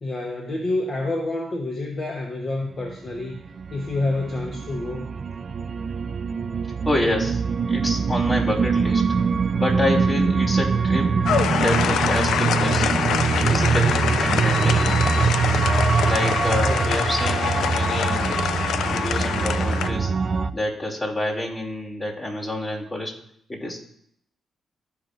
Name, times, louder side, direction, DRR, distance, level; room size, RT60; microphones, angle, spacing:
voice 1, 0.0-3.4 3.7-5.2 16.6-17.0, left 2 dB, 50° left, 0 dB, 1.2 m, -28 dB
sound 1, 2.9-20.5, right 5 dB, 55° right, 0.4 m, -23 dB
voice 2, 6.8-7.4 7.7-9.0 9.5-11.2 11.5-13.0 13.5-15.4 16.0-18.4 18.8-20.1 20.5-23.1 23.5-23.8, left 1 dB, 30° left, -2 dB, 2.9 m, -28 dB
sound 2, 11.3-19.9, left 7 dB, 80° left, 0.4 m, -25 dB
14.0 x 4.9 x 2.6 m, 0.70 s
supercardioid pair, 55°, 0 cm